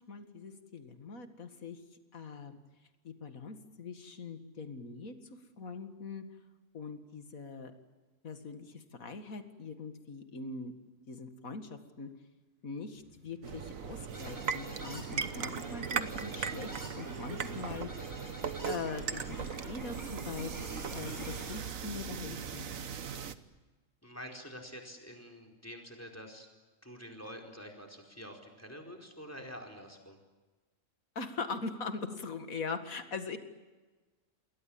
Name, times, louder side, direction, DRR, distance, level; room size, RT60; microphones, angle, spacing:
voice 1, 0.0-1.8 2.1-2.6 3.0-5.1 5.6-6.2 6.7-7.7 8.2-10.7 11.1-12.1 12.6-17.9 18.7-22.7 31.2-33.4, left 4 dB, 80° left, 8 dB, 2.4 m, -42 dB
sound 1, 12.8-15.2 15.5-18.1, equal, 35° right, 7.1 m, -61 dB
sound 2, 13.4-23.3, right 7 dB, 75° right, 1.6 m, -38 dB
sound 3, 14.1-21.6, equal, 15° right, 7.9 m, -47 dB
voice 2, 24.0-26.5 26.8-30.2, equal, 10° left, 4 dB, 4.6 m, -47 dB
29.0 x 21.5 x 8.7 m, 1.2 s
omnidirectional pair, 1.4 m